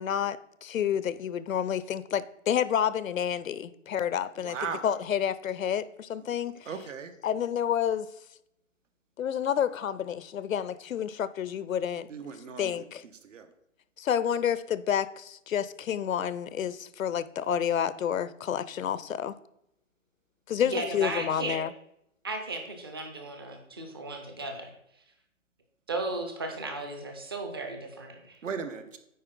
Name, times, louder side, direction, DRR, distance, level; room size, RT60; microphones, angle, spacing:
voice 1, 0.0-4.6 4.8-6.7 7.2-8.1 9.2-12.1 12.6-13.0 14.0-19.3 20.5-21.7, left 9 dB, 85° left, 0.6 m, -29 dB
voice 2, 4.4-4.8 6.7-7.1 12.1-12.8 13.2-13.5 28.4-29.0, right 6 dB, 65° right, 1.0 m, -37 dB
voice 3, 20.6-21.6 22.2-24.7 25.9-28.4, right 2 dB, 20° right, 0.5 m, -35 dB
9.4 x 4.4 x 3.8 m
hypercardioid pair, 155°, 39 cm